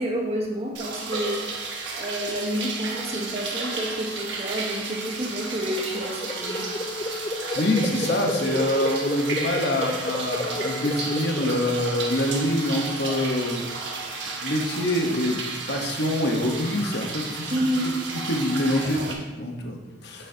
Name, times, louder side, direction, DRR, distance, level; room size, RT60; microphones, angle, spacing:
voice 1, 0.0-1.5 1.9-6.7 17.5-17.9, equal, 35° right, -1 dB, 1.1 m, -29 dB
sound 1, 0.7-19.1, right 3 dB, 75° right, 1.1 m, -33 dB
sound 2, 5.5-12.2, left 2 dB, 20° left, 0.3 m, -32 dB
voice 2, 7.5-13.6 14.4-15.4 15.7-17.5 18.3-20.3, left 1 dB, 65° left, 2 dB, 1.0 m, -25 dB
8.2 x 6.9 x 2.8 m, 1.2 s
head